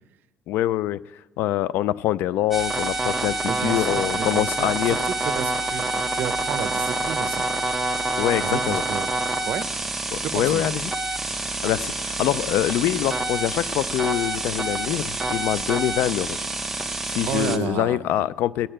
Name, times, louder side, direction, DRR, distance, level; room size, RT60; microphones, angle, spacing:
voice 1, 0.5-1.0 1.4-5.0 8.2-8.8 10.1-10.9 11.4-16.4 17.1-18.7, left 13 dB, 75° left, 19 dB, 0.4 m, -24 dB
sound 1, 2.5-17.6, right 2 dB, 5° right, 1.0 m, -27 dB
voice 2, 3.5-7.4 8.4-9.1 9.5-9.7 10.2-10.7 17.3-18.2, right 9 dB, 60° right, 12 dB, 0.7 m, -31 dB
18.0 x 6.6 x 8.9 m, 1.1 s
cardioid pair, 130°, 3 cm